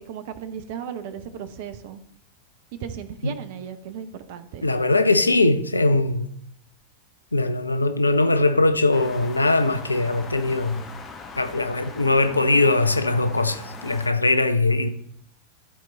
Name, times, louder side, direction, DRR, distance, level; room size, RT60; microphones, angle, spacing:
voice 1, 0.0-2.0 2.7-4.7, right 8 dB, 50° right, 0.6 m, -36 dB
voice 2, 4.6-6.3 7.3-10.8 11.4-14.9, left 2 dB, 80° left, 0.5 m, -21 dB
sound 1, 8.9-14.1, left 4 dB, 25° left, 1.2 m, -40 dB
12.5 x 4.5 x 4.1 m
figure-of-eight pair, 90°, 0 cm